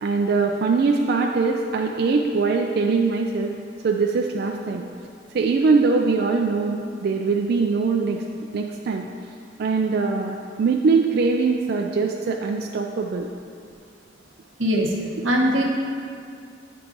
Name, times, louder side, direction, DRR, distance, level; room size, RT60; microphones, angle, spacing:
voice 1, 0.0-3.6 3.8-4.9 5.3-8.2 8.5-9.1 9.6-13.3, right 4 dB, 55° right, 1 dB, 0.3 m, -22 dB
voice 2, 14.6-14.9 15.2-15.6, equal, 90° right, -1 dB, 1.1 m, -20 dB
8.7 x 4.6 x 3.8 m, 2.3 s
head